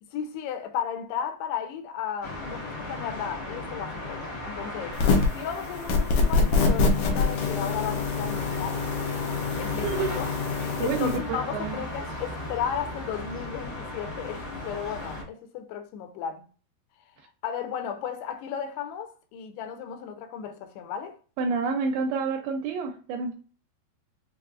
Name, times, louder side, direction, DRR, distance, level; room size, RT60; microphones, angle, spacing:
voice 1, 0.0-5.0 5.3-8.9 9.2-10.3 10.8-16.4 17.4-21.2, left 8 dB, 90° left, 2.7 m, -34 dB
sound 1, 2.2-15.2, left 1 dB, 60° left, 1.4 m, -36 dB
sound 2, 4.9-5.4 5.9-11.2, left 4 dB, 75° left, 2.0 m, -25 dB
voice 2, 9.8-10.1 10.8-11.8 21.4-23.3, right 4 dB, 80° right, 2.3 m, -28 dB
6.7 x 2.6 x 2.4 m
omnidirectional pair, 4.7 m